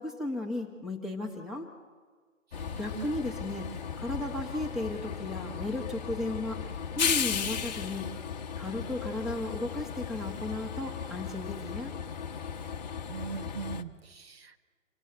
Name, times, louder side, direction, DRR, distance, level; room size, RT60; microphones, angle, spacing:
voice 1, 0.0-1.7 2.7-6.7 7.0-8.1 8.6-11.9, left 2 dB, ahead, 1 dB, 1.6 m, -35 dB
Train, 2.5-13.8, left 7 dB, 35° left, 1.2 m, -36 dB
voice 2, 2.5-3.1 13.1-14.7, right 5 dB, 45° right, 7 dB, 1.5 m, -41 dB
27.5 x 23.5 x 7.8 m, 1.5 s
figure-of-eight pair, 140°, 41 cm